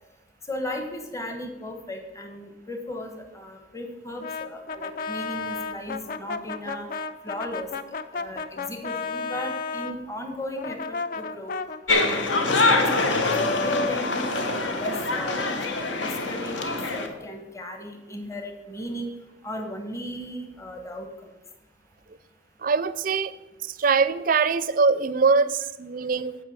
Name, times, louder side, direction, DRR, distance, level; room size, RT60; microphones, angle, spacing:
voice 1, 0.5-6.9 7.2-7.7 8.1-11.5 11.9-14.0 14.4-15.6 16.0-19.1 19.4-21.1, left 1 dB, 15° left, 4 dB, 1.0 m, -36 dB
Brass instrument, 4.2-10.0 10.6-15.3, left 4 dB, 45° left, 0.4 m, -32 dB
sound 1, 11.9-17.1, left 2 dB, 75° left, 1.2 m, -25 dB
voice 2, 22.6-23.3 23.8-26.4, right 4 dB, 45° right, 15 dB, 0.4 m, -22 dB
8.9 x 5.4 x 7.3 m, 1.1 s
head